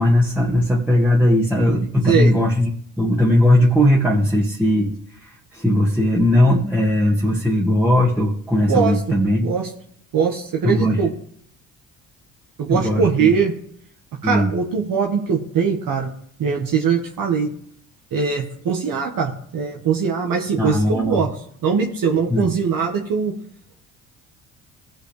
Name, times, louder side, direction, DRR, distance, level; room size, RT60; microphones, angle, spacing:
voice 1, 0.0-2.7 3.0-5.0 5.2-9.5 10.6-11.0 12.7-13.3 14.2-14.5 20.6-21.2 22.3-22.5, left 1 dB, 5° right, -4 dB, 2.1 m, -18 dB
voice 2, 8.7-9.0 9.4-9.7 10.1-11.1 12.6-13.5 14.2-16.1 16.4-17.5 18.1-21.3 21.6-23.3, right 6 dB, 55° right, 0 dB, 1.7 m, -21 dB
18.0 x 6.0 x 3.4 m, 0.66 s
hypercardioid pair, 55°, 40 cm